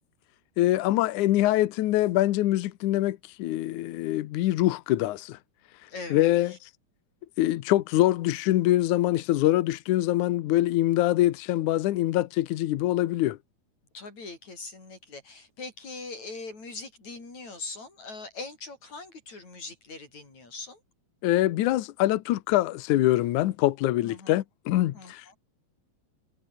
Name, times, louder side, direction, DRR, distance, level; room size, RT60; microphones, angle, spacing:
voice 1, 0.6-5.4 6.1-6.7 7.4-13.4 21.2-25.3, left 15 dB, 80° left, 1.8 m, -24 dB
voice 2, 5.9-6.3 13.9-20.8 24.0-24.4 24.9-25.1, left 3 dB, 40° left, 9.1 m, -41 dB
omnidirectional pair, 4.8 m